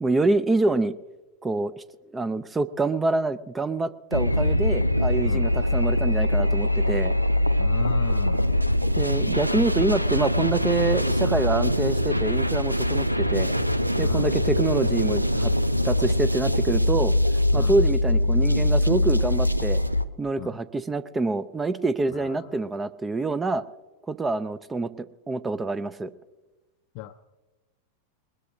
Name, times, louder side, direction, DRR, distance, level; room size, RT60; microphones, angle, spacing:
voice 1, 0.0-0.9 1.4-1.8 2.1-7.1 8.9-13.6 14.0-15.5 15.8-17.2 17.5-19.8 20.2-23.6 24.1-24.9 25.3-26.1, right 3 dB, 15° right, 16 dB, 0.5 m, -26 dB
sound 1, 4.1-20.0, left 1 dB, 90° right, 0.5 m, -23 dB
voice 2, 7.6-8.6 14.0-14.3 17.5-17.8 20.4-20.6 22.1-22.5 26.9-27.3, left 15 dB, 45° left, 7 dB, 0.5 m, -36 dB
20.5 x 20.5 x 2.7 m, 1.1 s
figure-of-eight pair, 90°, 0 cm